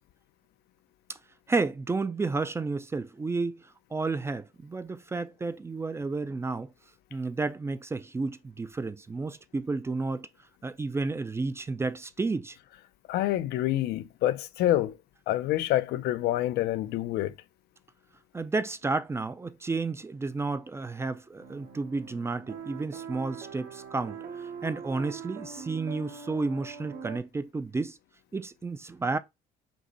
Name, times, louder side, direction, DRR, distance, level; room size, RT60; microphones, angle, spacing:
voice 1, 1.5-3.6 3.9-6.7 7.1-10.3 10.6-12.6 18.3-28.0 28.3-29.2, right 3 dB, 15° right, 0.3 m, -31 dB
voice 2, 13.1-15.0 15.3-17.3, left 14 dB, 75° left, 0.4 m, -27 dB
sound 1, 21.4-27.2, right 6 dB, 75° right, 1.4 m, -42 dB
5.4 x 2.1 x 3.9 m
cardioid pair, 110°, 17 cm